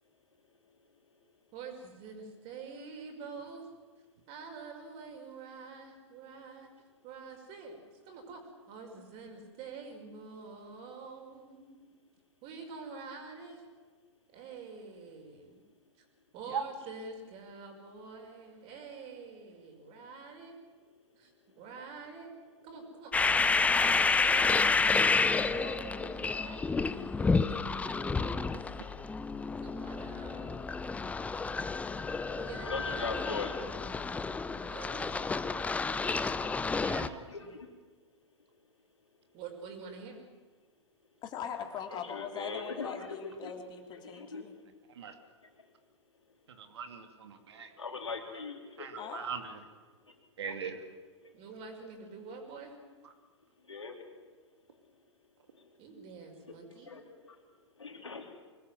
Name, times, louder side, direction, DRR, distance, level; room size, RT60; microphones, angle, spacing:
voice 1, 1.5-3.7 4.3-6.7 7.0-8.4 8.7-11.9 12.4-13.6 14.3-15.5 16.0-16.1 16.3-20.5 21.1-21.3 21.6-22.3 22.6-28.8 29.6-30.5 32.3-33.3 33.6-33.7 34.7-35.3 36.8-37.5 39.3-40.2 51.3-52.8 55.8-56.9, right 4 dB, 40° right, 4 dB, 5.9 m, -47 dB
sound 1, 23.1-37.1, left 4 dB, 10° left, 0.7 m, -30 dB
voice 2, 32.6-33.5 37.3-37.7 41.9-43.0 43.2-43.5 43.9-44.4 47.8-49.1 53.7-53.9 56.9-57.0 57.8-58.3, left 4 dB, 80° left, 3 dB, 3.5 m, -40 dB
voice 3, 36.4-37.3 44.9-45.2 46.5-47.7 48.2-48.4 48.8-49.6 50.4-50.9, right 6 dB, 65° right, 6 dB, 2.5 m, -40 dB
voice 4, 41.2-44.5 49.0-49.3, left 7 dB, 30° left, 4 dB, 3.1 m, -41 dB
24.5 x 20.0 x 7.7 m, 1.4 s
figure-of-eight pair, 100°, 15 cm